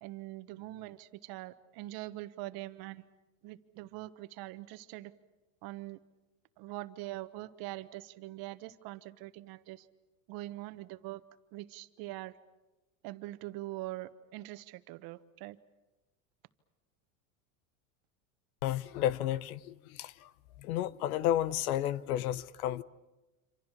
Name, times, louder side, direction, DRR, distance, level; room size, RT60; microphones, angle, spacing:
voice 1, 0.0-3.0 3.4-5.1 5.6-6.0 6.6-9.9 10.3-11.2 11.5-12.4 13.0-15.6, right 17 dB, 55° right, 1.3 m, -43 dB
voice 2, 18.6-20.3 20.6-22.8, left 12 dB, 80° left, 1.0 m, -32 dB
27.0 x 27.0 x 7.4 m
supercardioid pair, 130°, 43 cm